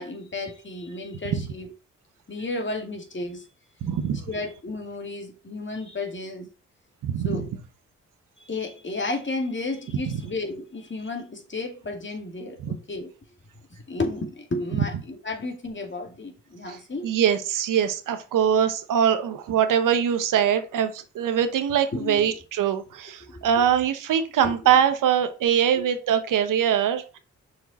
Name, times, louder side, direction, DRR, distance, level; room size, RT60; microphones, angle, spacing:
voice 1, 0.0-1.7 2.3-3.5 4.3-6.5 7.2-7.5 8.4-13.1 13.9-17.1 21.9-22.2 23.3-23.5 24.4-24.5 25.7-25.8 26.6-26.8, left 2 dB, 35° left, 2.3 m, -32 dB
voice 2, 3.8-4.2 7.0-7.5 12.6-12.7 16.7-16.8 17.0-27.2, right 9 dB, 75° right, 1.0 m, -23 dB
6.1 x 5.0 x 4.1 m
supercardioid pair, 50°, 32 cm